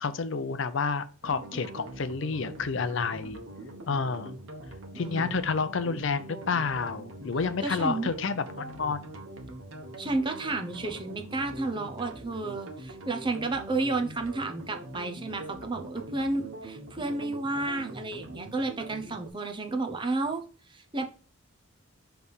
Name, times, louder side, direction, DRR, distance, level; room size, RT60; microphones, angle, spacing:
voice 1, 0.0-3.4 3.9-4.3 4.9-9.1, left 5 dB, 55° left, 12 dB, 0.5 m, -30 dB
sound 1, 1.2-19.3, right 1 dB, 65° right, 1.3 m, -43 dB
voice 2, 4.9-5.5 7.6-8.1 10.0-20.4 20.7-21.1, right 2 dB, 20° right, 5 dB, 0.7 m, -32 dB
6.3 x 3.4 x 5.4 m, 0.38 s
head